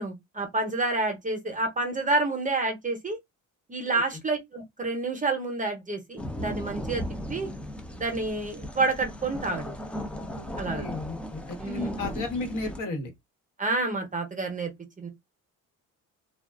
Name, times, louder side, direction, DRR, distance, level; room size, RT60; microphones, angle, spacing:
voice 1, 0.0-3.2 3.7-7.0 7.3-7.5 7.9-9.8 10.6-10.9 11.6-12.1 13.6-14.7 15.0-15.1, right 3 dB, 25° right, 0.7 m, -29 dB
sound 1, 6.2-12.8, equal, 5° left, 0.4 m, -36 dB
voice 2, 10.7-13.1, left 2 dB, 65° left, 1.2 m, -33 dB
2.3 x 2.3 x 2.3 m
cardioid pair, 85°, 34 cm